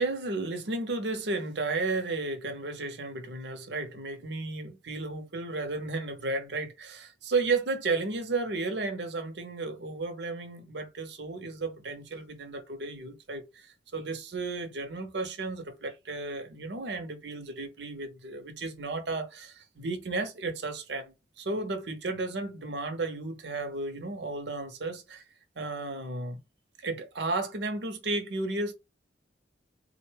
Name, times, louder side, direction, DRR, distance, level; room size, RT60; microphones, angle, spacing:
voice 1, 0.0-25.2 25.6-26.4 26.8-28.7, right 3 dB, 70° right, 0.8 m, -33 dB
3.7 x 2.1 x 3.3 m
head